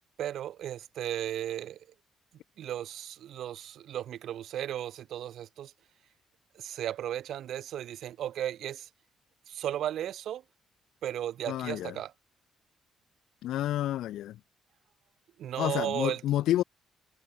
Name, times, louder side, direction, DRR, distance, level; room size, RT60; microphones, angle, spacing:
voice 1, 0.2-1.9 2.6-5.7 6.5-8.9 9.5-10.4 11.0-12.1 15.4-16.2, right 11 dB, 75° right, 1.4 m, -35 dB
voice 2, 11.5-12.0 13.4-14.4 15.6-16.6, left 13 dB, 80° left, 0.9 m, -29 dB
cardioid pair, 90°, 0 cm